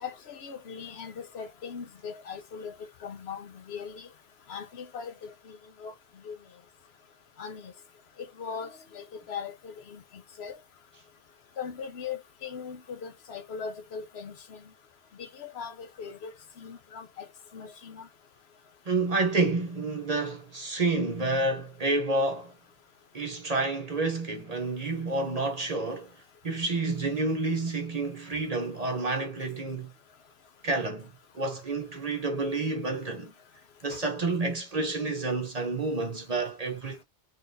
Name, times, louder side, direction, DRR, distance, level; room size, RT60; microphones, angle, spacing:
voice 1, 0.0-4.1 4.5-5.9 6.2-6.4 7.4-7.7 8.2-10.0 10.4-10.6 11.6-14.6 15.2-16.3 16.6-17.3 17.5-18.1, left 6 dB, 70° left, 1.0 m, -40 dB
voice 2, 18.9-22.5 23.1-26.1 26.4-29.9 30.6-33.3 33.8-37.0, right 3 dB, 40° right, 0.7 m, -29 dB
3.9 x 3.7 x 2.6 m
omnidirectional pair, 1.1 m